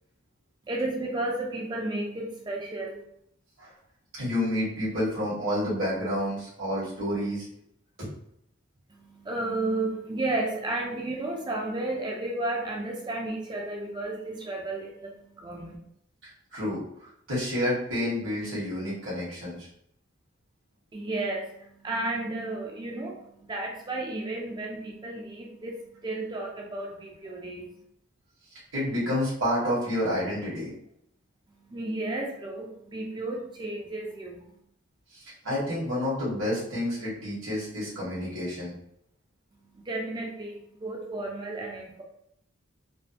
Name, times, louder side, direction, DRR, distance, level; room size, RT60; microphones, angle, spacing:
voice 1, 0.7-3.0 8.9-15.8 20.9-23.2 23.5-27.7 31.7-34.4 39.7-42.0, right 2 dB, 20° right, 0 dB, 0.4 m, -33 dB
voice 2, 4.1-7.4 8.0-8.1 16.2-16.8 17.3-19.7 28.7-30.7 35.1-38.7, left 1 dB, 70° right, -9 dB, 1.3 m, -29 dB
3.3 x 2.2 x 2.8 m, 0.73 s
head